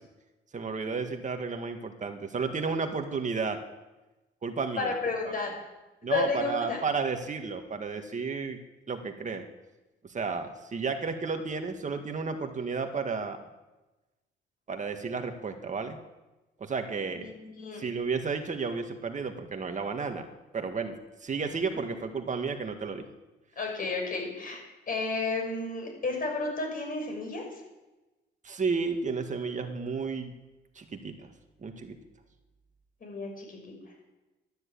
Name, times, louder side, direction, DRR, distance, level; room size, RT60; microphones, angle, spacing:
voice 1, 0.5-3.6 4.4-4.9 6.0-8.6 8.9-9.4 10.0-13.4 14.7-16.0 16.6-17.3 17.8-20.3 20.5-20.9 21.2-23.0 28.4-30.3 30.8-31.3 31.6-32.0, right 4 dB, 40° right, 5 dB, 1.9 m, -32 dB
voice 2, 4.8-5.5 6.1-6.8 17.2-17.8 23.6-24.6 24.9-27.6 33.0-33.7, left 3 dB, 45° left, 1 dB, 6.3 m, -32 dB
12.5 x 10.5 x 8.6 m, 1.1 s
cardioid pair, 90°, 20 cm